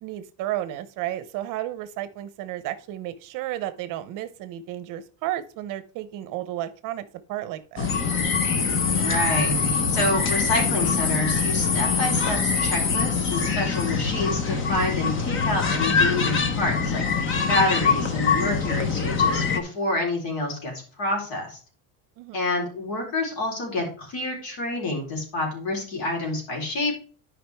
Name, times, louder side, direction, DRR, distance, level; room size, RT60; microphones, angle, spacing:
voice 1, 0.0-7.9 22.2-22.4, right 13 dB, 50° right, 13 dB, 0.8 m, -32 dB
sound 1, 7.8-19.6, left 5 dB, 30° left, 0.8 m, -24 dB
voice 2, 9.0-17.0 17.5-21.6 22.3-26.9, left 2 dB, 60° left, 0 dB, 3.8 m, -28 dB
12.0 x 5.1 x 3.4 m, 0.40 s
cardioid pair, 170°, 41 cm